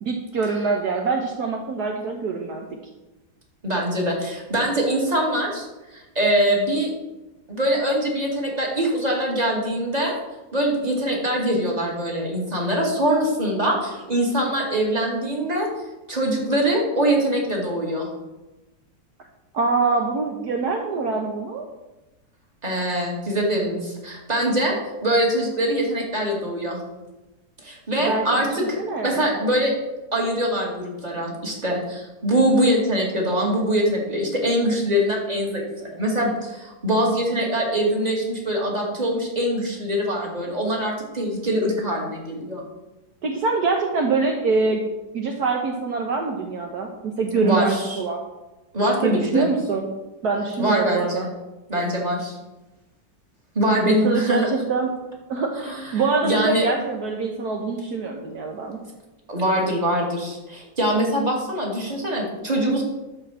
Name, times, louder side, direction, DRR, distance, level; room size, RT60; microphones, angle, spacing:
voice 1, 0.0-2.6 19.5-21.6 28.0-28.5 28.8-29.4 43.2-44.9 45.1-48.2 49.0-49.9 50.2-51.3 53.9-54.9 55.3-58.8, right 4 dB, 60° right, 1 dB, 1.6 m, -24 dB
voice 2, 3.6-5.7 5.9-6.9 7.5-10.2 10.5-15.7 16.1-18.1 22.6-26.8 27.6-28.8 29.0-29.7 30.1-42.6 47.4-48.0 48.7-49.5 50.6-51.3 51.7-52.3 53.5-54.5 55.6-55.9 56.2-56.7 59.3-62.8, right 1 dB, 20° right, -1 dB, 2.6 m, -23 dB
11.5 x 5.9 x 7.4 m, 1.1 s
omnidirectional pair, 1.9 m